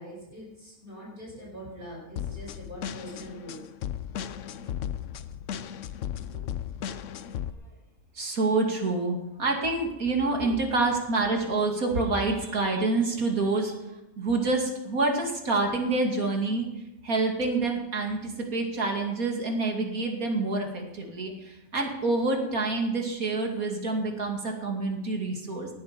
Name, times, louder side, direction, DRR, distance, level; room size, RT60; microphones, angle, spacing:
voice 1, 0.0-3.6 6.2-6.4 10.4-10.5, equal, 40° right, -5 dB, 5.7 m, -43 dB
sound 1, 2.2-7.5, left 9 dB, 65° left, 1.0 m, -35 dB
voice 2, 8.1-13.8 14.2-16.7 17.0-25.7, right 3 dB, 85° right, 2 dB, 3.0 m, -27 dB
20.0 x 10.5 x 5.2 m, 0.91 s
omnidirectional pair, 1.5 m